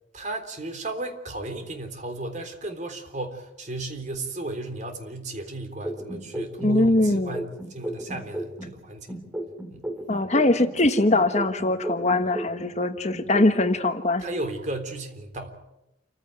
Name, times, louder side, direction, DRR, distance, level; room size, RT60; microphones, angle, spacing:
voice 1, 0.1-9.2 9.7-9.8 14.2-15.5, right 2 dB, 40° right, 7 dB, 3.6 m, -34 dB
sound 1, 5.8-8.8 9.1-12.8 13.1-13.8, right 1 dB, 10° right, 2.5 m, -35 dB
voice 2, 6.6-7.4 10.1-14.2, left 2 dB, 40° left, 9 dB, 1.3 m, -22 dB
29.0 x 15.5 x 9.2 m, 0.91 s
head